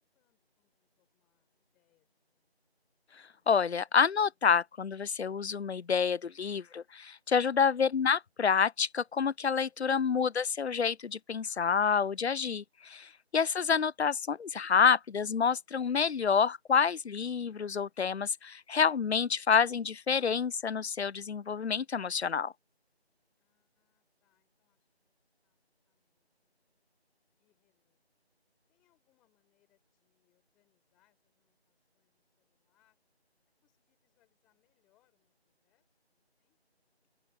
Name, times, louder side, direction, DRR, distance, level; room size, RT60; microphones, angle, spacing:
voice 1, 0.0-2.8 23.4-25.1 25.4-26.7 27.4-28.1 28.7-33.0 33.6-35.9 36.1-36.9, left 17 dB, ahead, 6.4 m, -78 dB
voice 2, 3.5-22.5, left 6 dB, 75° left, 0.5 m, -28 dB
open air
figure-of-eight pair, 170°, 33 cm